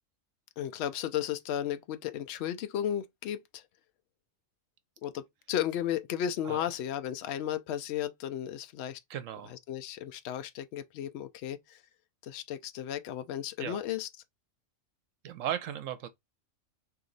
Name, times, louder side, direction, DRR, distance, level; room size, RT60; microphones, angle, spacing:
voice 1, 0.6-3.6 5.0-9.0 9.5-11.8 12.2-14.1, left 10 dB, 65° left, 0.7 m, -34 dB
voice 2, 9.1-9.6 13.6-13.8 15.2-16.1, right 10 dB, 75° right, 1.0 m, -36 dB
3.0 x 2.8 x 3.9 m
omnidirectional pair, 1.4 m